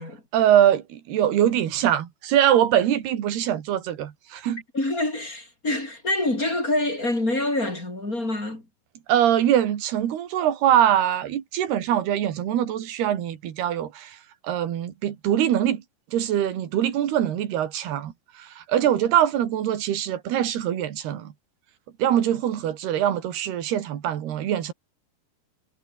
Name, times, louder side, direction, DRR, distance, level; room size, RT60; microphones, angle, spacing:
voice 1, 0.3-4.6 9.1-14.2 14.4-15.8 16.1-21.3 22.0-24.7, right 10 dB, 75° right, 4.1 m, -23 dB
voice 2, 4.7-8.7, left 2 dB, 20° left, 5.7 m, -26 dB
omnidirectional pair, 4.6 m